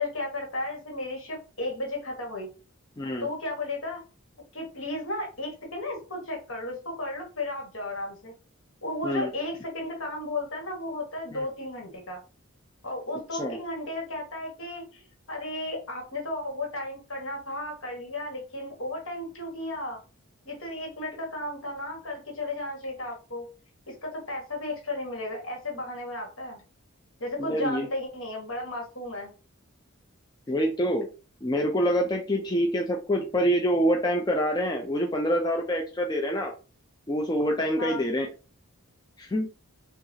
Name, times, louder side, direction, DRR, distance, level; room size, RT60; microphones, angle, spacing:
voice 1, 0.0-2.5 3.2-4.0 4.5-8.3 8.8-12.2 12.8-20.0 20.4-23.5 23.9-26.6 27.2-29.3 37.8-38.0, left 2 dB, 65° left, 0 dB, 1.6 m, -34 dB
voice 2, 3.0-3.3 9.0-9.3 11.3-11.4 13.4-13.6 27.4-27.9 30.5-31.1 31.4-36.5 37.1-38.3 39.2-39.5, equal, 20° left, 1 dB, 0.4 m, -26 dB
5.7 x 2.4 x 2.7 m, 0.34 s
head